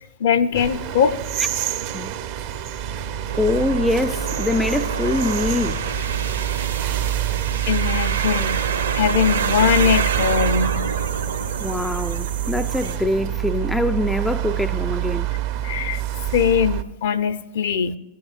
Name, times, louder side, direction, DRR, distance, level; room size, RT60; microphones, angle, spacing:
voice 1, 0.2-1.2 7.6-8.6 8.9-10.9 15.6-16.0 16.3-18.0, left 7 dB, 55° left, 0.6 m, -21 dB
sound 1, 0.5-16.8, right 12 dB, 45° right, 0.7 m, -27 dB
sound 2, 3.3-13.0, right 6 dB, 70° right, 1.0 m, -27 dB
voice 2, 3.4-5.9 11.6-15.3, left 2 dB, 5° left, 0.3 m, -24 dB
18.5 x 8.4 x 2.5 m
figure-of-eight pair, 90°, 0 cm